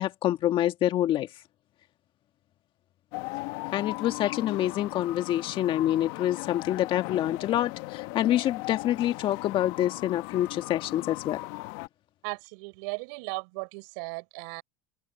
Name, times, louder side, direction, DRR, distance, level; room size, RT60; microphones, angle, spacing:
voice 1, 0.0-1.4 3.7-11.4, left 12 dB, 50° left, 1.8 m, -27 dB
sound 1, 3.1-11.9, left 23 dB, 70° left, 1.2 m, -38 dB
voice 2, 12.2-14.6, right 33 dB, 75° right, 6.4 m, -36 dB
supercardioid pair, 90°, 11 cm